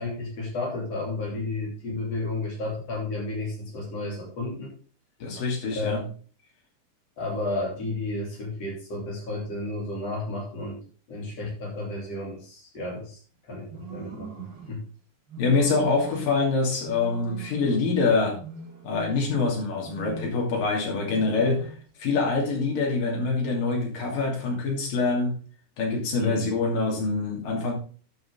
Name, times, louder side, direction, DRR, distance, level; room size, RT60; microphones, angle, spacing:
voice 1, 0.0-4.7 5.8-6.1 7.2-10.8 11.1-13.2 13.5-14.8 26.2-26.4, left 2 dB, 50° left, -1 dB, 3.9 m, -32 dB
voice 2, 5.2-6.0 15.4-18.4 18.8-21.7 22.0-25.4 25.8-27.7, left 3 dB, 90° left, -1 dB, 4.5 m, -25 dB
sound 1, 13.7-14.8 15.3-16.3 16.8-17.9 18.4-19.4 19.8-20.5 21.1-21.9, right 4 dB, 40° right, 2.1 m, -41 dB
11.5 x 6.9 x 3.7 m, 0.39 s
omnidirectional pair, 3.8 m